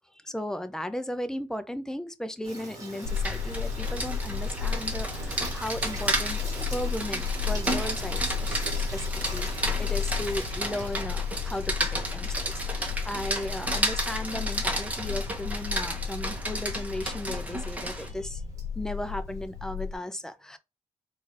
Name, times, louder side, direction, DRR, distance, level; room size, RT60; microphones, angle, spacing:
voice 1, 0.2-6.4 6.7-8.6 8.9-18.4 18.8-20.6, left 1 dB, 5° left, 0.4 m, -36 dB
Water tap faucet / Sink (filling or washing), 2.4-19.9, right 2 dB, 30° right, 1.3 m, -45 dB
sound 1, 3.0-19.9, left 6 dB, 75° left, 0.5 m, -33 dB
Rain, 3.0-18.1, right 1 dB, 10° right, 1.0 m, -33 dB
4.1 x 2.5 x 3.1 m
wide cardioid pair, 150°, 12 cm